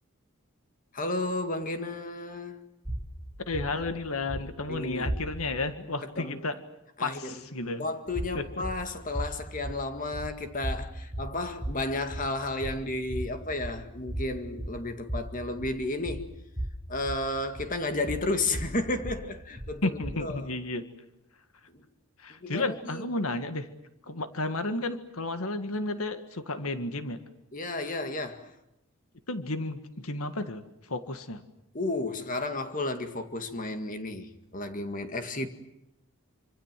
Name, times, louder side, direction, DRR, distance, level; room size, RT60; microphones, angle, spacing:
voice 1, 0.9-2.6 4.7-5.1 6.2-6.5 7.0-7.4 7.8-16.3 16.9-19.9 20.2-20.5 21.7-21.8 22.3-23.0 27.5-28.5 31.7-35.5, left 2 dB, 35° left, 2.0 m, -33 dB
sound 1, 2.9-5.7 8.1-20.4, right 1 dB, 15° right, 4.7 m, -37 dB
voice 2, 3.5-6.6 7.0-7.8 8.4-8.5 19.8-20.8 22.2-23.7 24.1-27.2 29.3-30.6 30.9-31.4, left 2 dB, 75° left, 1.9 m, -32 dB
26.5 x 26.0 x 7.6 m
head